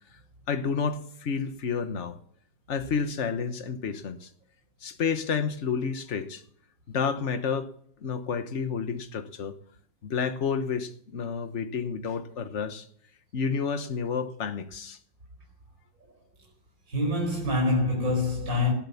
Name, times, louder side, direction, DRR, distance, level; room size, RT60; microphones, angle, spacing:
voice 1, 0.5-2.2 2.7-4.3 4.8-6.4 6.9-7.7 8.0-9.5 10.0-12.9 13.3-15.0, left 6 dB, 40° left, 1.3 m, -30 dB
voice 2, 16.9-18.7, left 2 dB, 45° right, 5.2 m, -25 dB
18.5 x 7.8 x 7.1 m
omnidirectional pair, 2.1 m